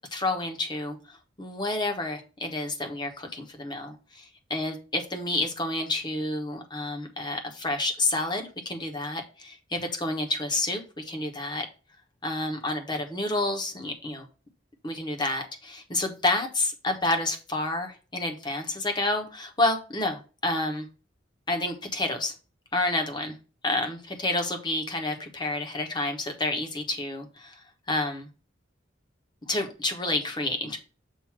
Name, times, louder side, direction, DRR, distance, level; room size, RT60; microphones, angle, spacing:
voice 1, 0.0-11.6 12.2-14.2 14.8-20.9 21.5-22.3 22.7-23.4 23.6-27.6 27.9-28.3 29.5-30.8, left 2 dB, 25° left, 4 dB, 1.1 m, -29 dB
7.3 x 2.7 x 5.9 m, 0.35 s
head